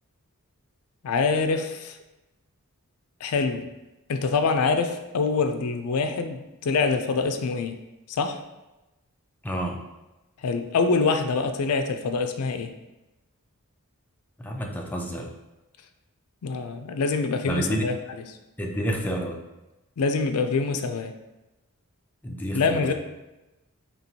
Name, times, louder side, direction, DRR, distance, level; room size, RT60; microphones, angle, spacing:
voice 1, 1.0-2.0 3.2-3.7 4.1-7.7 8.1-8.4 10.4-12.7 16.4-18.0 20.0-21.1 22.5-22.9, left 4 dB, 75° left, 7 dB, 0.4 m, -25 dB
voice 2, 9.4-9.8 14.4-15.3 17.5-17.8 18.6-19.4 22.2-22.9, right 1 dB, 10° left, 1 dB, 0.4 m, -29 dB
4.4 x 2.9 x 2.8 m, 1.0 s
head